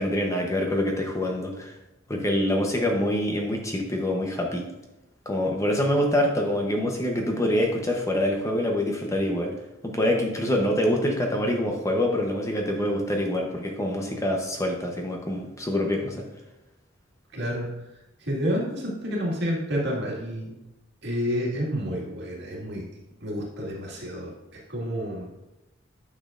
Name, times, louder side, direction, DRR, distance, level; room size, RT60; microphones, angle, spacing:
voice 1, 0.0-1.7 2.1-4.6 5.3-9.5 9.8-16.2, left 1 dB, 15° left, 1 dB, 0.8 m, -25 dB
voice 2, 17.3-17.7 18.2-20.5 21.0-22.8 23.2-25.3, equal, 60° right, -3 dB, 1.9 m, -29 dB
9.7 x 6.2 x 2.5 m, 0.96 s
head